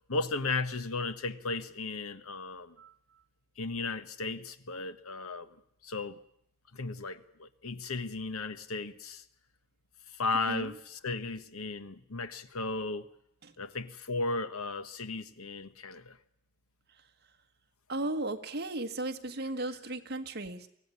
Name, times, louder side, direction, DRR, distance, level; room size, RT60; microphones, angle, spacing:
voice 1, 0.1-2.7 3.6-5.5 5.8-6.2 6.7-9.2 10.1-13.1 13.6-16.2, left 3 dB, 85° left, 12 dB, 1.3 m, -35 dB
voice 2, 17.9-20.7, right 2 dB, 50° right, 7 dB, 1.6 m, -35 dB
23.5 x 16.0 x 9.7 m, 0.74 s
head